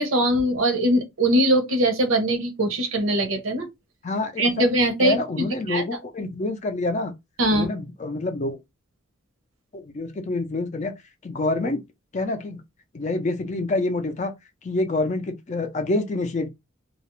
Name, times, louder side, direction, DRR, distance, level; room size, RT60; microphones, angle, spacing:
voice 1, 0.0-3.7 4.4-5.2 5.7-5.8 7.4-7.7, right 1 dB, 80° right, 0.7 m, -21 dB
voice 2, 4.0-4.7 5.0-7.1 7.5-8.6 9.7-10.9 11.2-11.8 12.1-12.6 12.9-14.3 14.6-16.5, left 2 dB, 35° left, 0.4 m, -27 dB
2.3 x 2.0 x 2.9 m
head